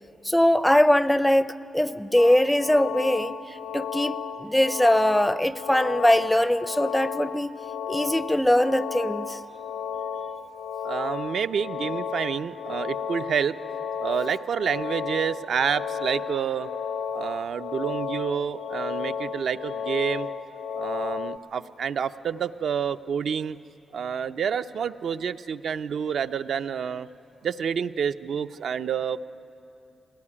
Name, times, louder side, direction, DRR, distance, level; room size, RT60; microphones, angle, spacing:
voice 1, 0.2-7.5 7.9-9.4, left 1 dB, 5° left, 14 dB, 0.4 m, -22 dB
sound 1, 2.2-21.4, left 7 dB, 65° left, 0.6 m, -33 dB
voice 2, 10.8-13.6 14.0-16.7 17.1-20.3 20.8-23.6 23.9-27.1 27.4-29.2, right 7 dB, 70° right, 10 dB, 0.5 m, -28 dB
20.5 x 17.5 x 9.8 m, 2.7 s
wide cardioid pair, 135°, 0 cm